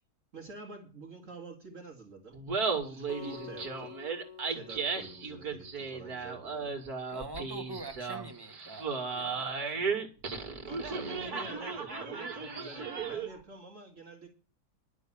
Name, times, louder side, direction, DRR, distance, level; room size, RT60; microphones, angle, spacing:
voice 1, 0.3-2.4 2.8-3.9 4.5-6.8 10.3-14.3, right 3 dB, 50° right, 2.5 m, -48 dB
Laughter, 2.3-13.4, right 5 dB, 65° right, 2.7 m, -35 dB
Acoustic guitar, 3.1-6.3, left 6 dB, 25° left, 2.1 m, -49 dB
voice 2, 7.1-10.1, right 2 dB, 15° right, 1.6 m, -45 dB
11.0 x 6.9 x 8.5 m
omnidirectional pair, 1.7 m